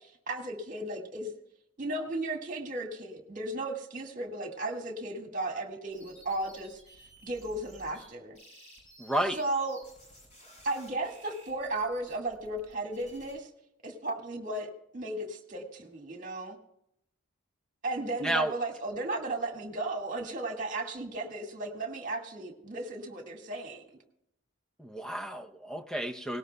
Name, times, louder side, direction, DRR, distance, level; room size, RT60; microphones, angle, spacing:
voice 1, 0.0-1.3 1.8-6.8 7.2-8.4 9.4-9.8 10.6-13.5 13.8-16.6 17.8-23.8, right 2 dB, 35° right, 3 dB, 1.8 m, -35 dB
sound 1, 5.9-8.1 8.3-13.3, equal, 35° left, 6.6 m, -55 dB
voice 2, 9.0-9.4 18.2-18.5 24.8-26.4, right 1 dB, 5° left, 5 dB, 0.6 m, -31 dB
18.5 x 17.5 x 2.2 m, 0.77 s
head